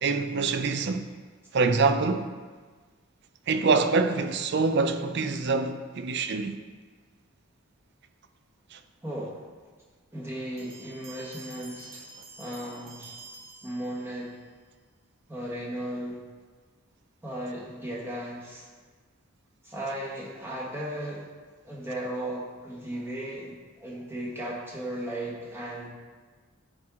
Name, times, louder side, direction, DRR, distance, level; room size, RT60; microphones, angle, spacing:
voice 1, 0.0-1.1 1.5-2.3 3.5-6.6 8.7-8.8, right 4 dB, 50° right, 0.5 m, -25 dB
voice 2, 9.0-9.4 10.1-12.1 12.4-13.2 13.6-14.4 15.3-16.2 17.2-18.7 19.6-21.3 21.6-25.9, right 1 dB, 10° right, 1.4 m, -36 dB
Bell, 10.6-14.4, right 3 dB, 70° right, 1.6 m, -48 dB
10.5 x 4.5 x 3.7 m
head